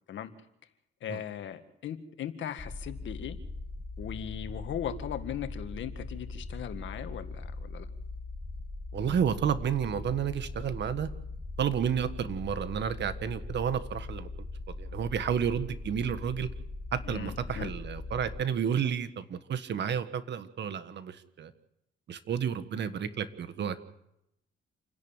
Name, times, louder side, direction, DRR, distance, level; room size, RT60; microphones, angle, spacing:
voice 1, 1.0-3.4 4.0-7.9 17.0-17.7, left 9 dB, 70° left, 9 dB, 1.9 m, -38 dB
sound 1, 2.6-18.4, left 3 dB, 20° left, 1.8 m, -40 dB
voice 2, 8.9-11.1 11.6-14.3 14.8-16.5 16.9-21.5 22.1-23.8, right 8 dB, 60° right, 12 dB, 1.6 m, -31 dB
28.5 x 11.0 x 9.0 m, 0.82 s
cardioid pair, 90°, 20 cm